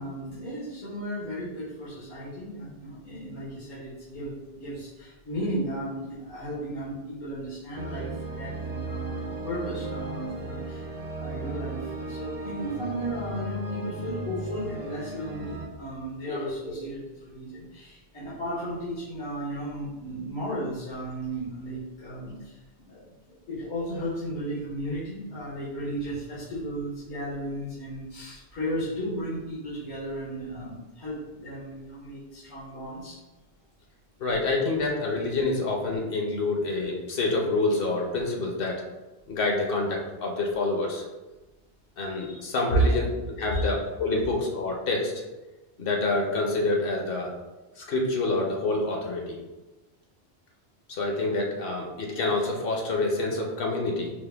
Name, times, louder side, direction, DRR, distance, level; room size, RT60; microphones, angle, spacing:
voice 1, 0.0-10.9 11.2-22.6 22.9-33.2 42.1-42.4 42.7-42.8 43.5-43.8, right 1 dB, 80° left, -10 dB, 1.5 m, -34 dB
sound 1, 7.7-15.7, right 2 dB, 55° right, 0.4 m, -36 dB
voice 2, 34.2-38.8 39.3-41.0 42.0-43.1 43.4-45.1 45.8-47.3 47.8-49.4 50.9-54.1, left 2 dB, 60° left, 0 dB, 0.8 m, -27 dB
4.9 x 2.1 x 3.3 m, 1.1 s
omnidirectional pair, 1.2 m